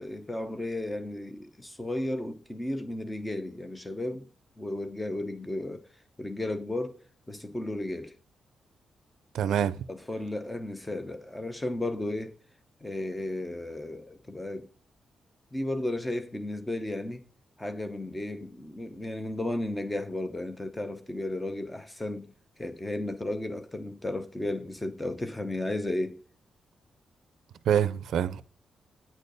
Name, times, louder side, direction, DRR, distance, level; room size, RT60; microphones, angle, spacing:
voice 1, 0.0-4.3 4.6-5.9 6.2-8.1 9.9-12.3 12.8-14.7 15.5-17.3 17.6-22.3 22.6-26.2, left 1 dB, 10° left, 0.8 m, -34 dB
voice 2, 9.3-9.8 27.7-28.4, right 9 dB, 90° right, 0.5 m, -26 dB
9.2 x 4.4 x 6.6 m
wide cardioid pair, 180°, 0 cm